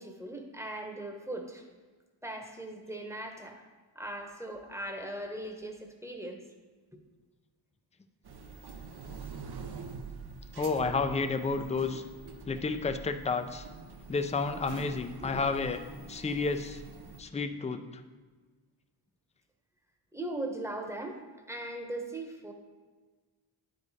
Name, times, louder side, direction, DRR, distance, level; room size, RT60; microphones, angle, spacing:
voice 1, 0.0-1.6 2.2-3.6 3.9-6.4 15.2-15.4 20.1-21.2 21.5-22.5, right 1 dB, 5° right, 3 dB, 1.0 m, -39 dB
sound 1, 8.2-17.2, right 4 dB, 55° right, 0.7 m, -45 dB
voice 2, 10.5-12.0 12.4-13.7 14.1-15.8 16.1-16.8 17.2-17.8, left 4 dB, 15° left, 8 dB, 0.4 m, -31 dB
9.3 x 5.0 x 4.1 m, 1.4 s
wide cardioid pair, 65°, 47 cm